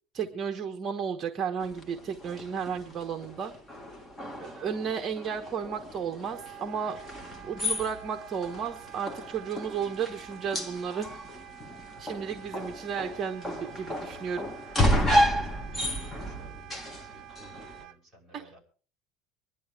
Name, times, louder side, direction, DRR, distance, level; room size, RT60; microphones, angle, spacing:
voice 1, 0.1-3.5 4.4-7.0 7.4-11.2 12.0-14.5, right 7 dB, 25° right, 5 dB, 1.1 m, -33 dB
sound 1, 1.6-17.8, equal, 15° left, 1.5 m, -32 dB
Wind instrument woodwind instrument, 6.2-18.0, right 13 dB, 60° right, 0.9 m, -48 dB
voice 2, 12.3-12.8 14.8-18.6, right 1 dB, 5° right, -4 dB, 5.8 m, -54 dB
24.5 x 11.0 x 3.5 m, 0.39 s
cardioid pair, 165°, 0 cm